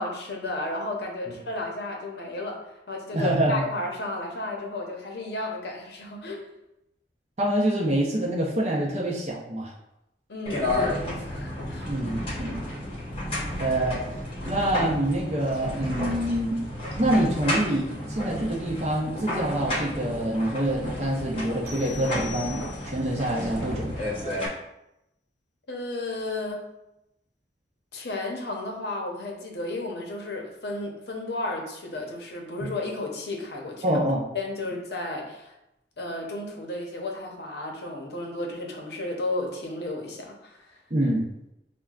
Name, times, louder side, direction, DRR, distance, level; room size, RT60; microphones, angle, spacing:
voice 1, 0.0-2.6 2.9-6.5 10.3-11.9 25.7-26.6 27.9-34.0 34.3-35.5 36.0-40.8, left 2 dB, 70° left, 1 dB, 0.7 m, -33 dB
voice 2, 3.1-3.6 7.4-9.7 11.9-12.6 13.6-14.0 14.4-16.6 17.0-23.9 32.6-32.7 33.8-34.2 40.9-41.3, right 1 dB, 35° right, -3 dB, 0.6 m, -26 dB
sound 1, 10.5-24.5, left 1 dB, 30° left, 0.8 m, -32 dB
sound 2, 21.7-23.2, left 8 dB, 80° right, 0.5 m, -43 dB
6.2 x 2.2 x 2.4 m, 0.88 s
head